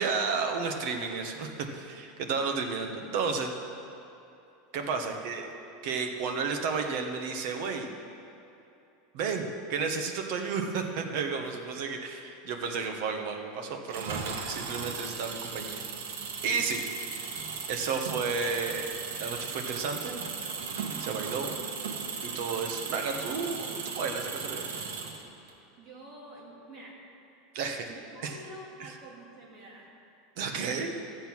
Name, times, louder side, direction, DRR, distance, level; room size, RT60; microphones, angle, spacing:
voice 1, 0.0-3.5 4.7-5.5 5.8-7.9 9.1-15.8 16.4-16.8 17.7-20.3 21.0-21.6 22.2-24.7 27.5-27.9 28.2-28.4 28.8-28.9 30.4-30.9, right 5 dB, 50° right, 3 dB, 1.2 m, -32 dB
voice 2, 5.0-5.3 25.8-27.0 27.9-29.9 30.4-30.8, right 1 dB, 25° right, -4 dB, 2.6 m, -48 dB
Engine, 13.9-25.5, right 5 dB, 85° right, 1.5 m, -37 dB
14.0 x 7.9 x 6.0 m, 2.8 s
supercardioid pair, 175°, 0 cm